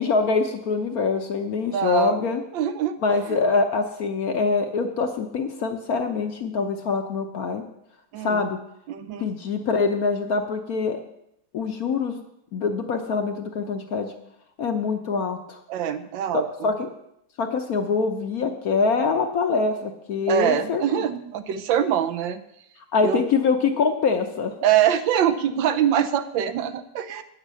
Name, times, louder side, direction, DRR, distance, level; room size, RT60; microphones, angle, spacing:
voice 1, 0.0-2.4 3.0-7.6 8.2-8.6 9.2-11.0 11.5-12.2 12.5-14.1 14.6-15.6 16.3-16.9 17.4-20.8 22.9-24.5, left 4 dB, 60° left, 5 dB, 1.1 m, -24 dB
voice 2, 1.7-2.2 2.5-3.0 3.3-3.4 8.1-8.4 8.9-9.3 15.7-16.7 20.3-22.4 23.0-23.3 24.6-27.2, right 9 dB, 75° right, 11 dB, 1.4 m, -24 dB
9.1 x 5.9 x 8.2 m, 0.77 s
omnidirectional pair, 2.1 m